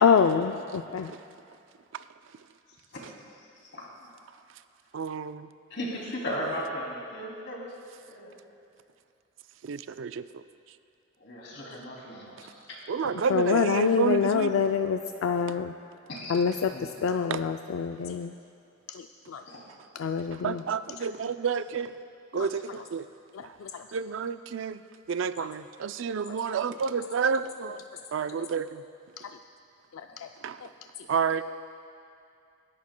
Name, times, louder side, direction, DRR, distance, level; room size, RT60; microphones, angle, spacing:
voice 1, 0.0-1.1 13.3-15.7 16.3-18.3 18.9-19.4 20.0-20.6 23.6-23.8 29.9-30.3, left 6 dB, 85° left, 6 dB, 0.4 m, -26 dB
voice 2, 4.9-5.5 9.6-10.4 12.4-12.5 12.9-14.5 17.3-17.4 20.3-22.0 22.3-23.1 23.4-23.6 23.9-24.8 25.1-27.8 28.1-28.8 30.4-30.7 31.1-31.4, right 6 dB, 70° right, 12 dB, 0.4 m, -30 dB
voice 3, 5.7-7.7 8.0-8.3 11.2-12.3 16.1-16.4 16.7-16.8 19.5-19.6, equal, 60° left, -3 dB, 2.8 m, -36 dB
26.0 x 11.0 x 2.2 m, 2.4 s
head